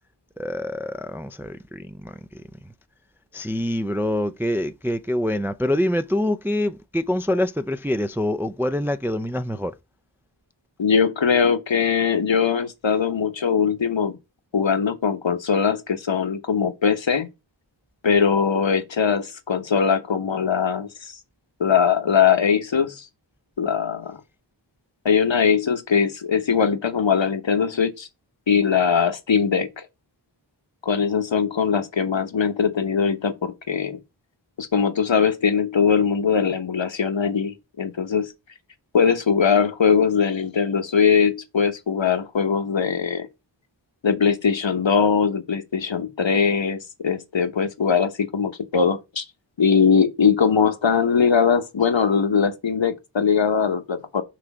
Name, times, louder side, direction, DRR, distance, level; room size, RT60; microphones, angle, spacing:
voice 1, 0.4-2.1 3.3-9.7, left 1 dB, 5° right, 0.4 m, -25 dB
voice 2, 10.8-14.2 14.5-17.3 18.0-21.2 21.6-23.1 23.6-24.2 25.0-28.1 28.5-29.8 30.8-34.0 34.6-38.3 38.9-43.3 44.0-49.2 49.6-54.2, left 6 dB, 70° left, 1.0 m, -21 dB
6.0 x 3.2 x 5.9 m
wide cardioid pair, 45°, 47 cm